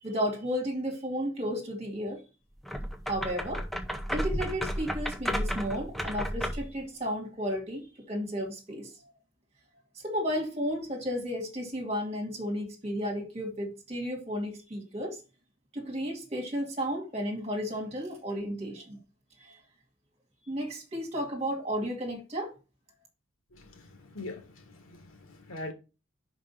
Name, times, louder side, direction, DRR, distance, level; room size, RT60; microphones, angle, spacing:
voice 1, 0.0-2.2 3.1-3.6 4.1-8.9 10.0-15.2 15.7-19.0 20.5-22.5, equal, 30° right, 2.3 m, -33 dB
sound 1, 2.6-6.7, equal, ahead, 0.7 m, -33 dB
voice 2, 23.5-25.7, left 2 dB, 90° left, 1.8 m, -43 dB
5.2 x 5.0 x 5.6 m
head